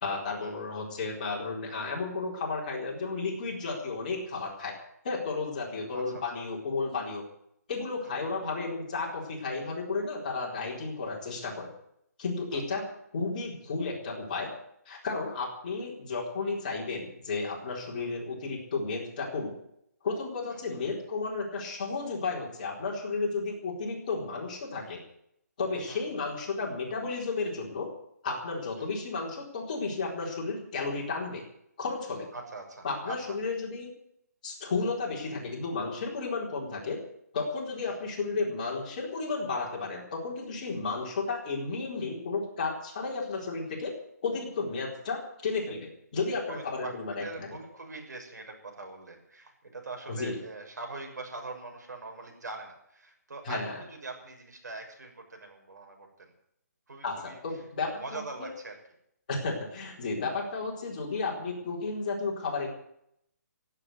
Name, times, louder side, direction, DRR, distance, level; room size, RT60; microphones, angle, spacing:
voice 1, 0.0-4.8 5.0-7.2 7.7-11.7 12.2-12.8 13.1-14.5 14.9-19.5 20.0-25.0 25.6-27.9 28.2-31.4 31.8-32.3 32.8-33.9 34.4-37.0 37.3-43.9 44.2-47.6 50.1-50.4 53.4-53.7 57.0-58.5 59.3-62.7, left 4 dB, 30° left, -2 dB, 4.2 m, -33 dB
voice 2, 5.9-6.2 8.0-8.1 12.5-12.8 18.0-18.1 20.5-20.6 25.9-26.1 28.8-28.9 32.3-33.4 37.8-38.0 46.5-56.3 56.9-57.4 57.8-58.8, right 3 dB, 85° right, 3 dB, 6.4 m, -43 dB
16.5 x 8.7 x 9.5 m, 0.73 s
hypercardioid pair, 180°, 9 cm